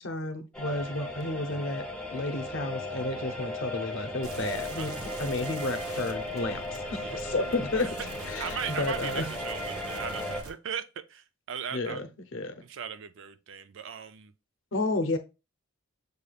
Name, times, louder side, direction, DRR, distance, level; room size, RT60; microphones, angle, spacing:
voice 1, 0.0-1.8 2.1-8.0 8.3-9.3 11.7-12.5 14.7-15.2, left 2 dB, 55° left, 0.7 m, -32 dB
sound 1, 0.5-10.4, left 1 dB, 5° left, 0.4 m, -36 dB
sound 2, 4.2-10.5, right 2 dB, 80° right, 1.1 m, -44 dB
voice 2, 8.4-10.8 11.1-12.1 12.6-14.3, right 8 dB, 55° right, 0.4 m, -38 dB
6.7 x 2.3 x 3.3 m
head